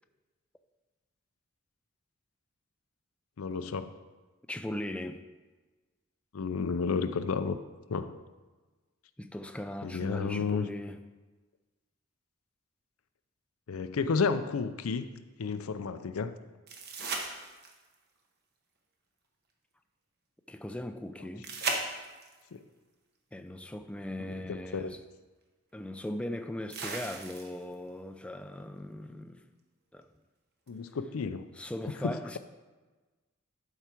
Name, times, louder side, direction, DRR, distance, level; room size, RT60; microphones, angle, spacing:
voice 1, 3.4-3.9 6.3-7.6 7.9-8.2 9.8-10.7 13.7-15.1 15.4-16.3 22.5-22.6 24.2-24.9 30.7-31.5 32.0-32.2, left 5 dB, 85° left, 0.5 m, -32 dB
voice 2, 4.5-5.2 9.2-11.0 20.5-21.5 23.3-25.0 25.7-29.4 29.9-30.1 31.6-32.4, left 1 dB, 5° left, 0.3 m, -39 dB
sound 1, 16.7-17.9 21.4-22.4 24.3-24.4 26.7-27.7 30.7-30.8, right 3 dB, 50° right, 1.1 m, -36 dB
11.5 x 4.7 x 4.4 m
head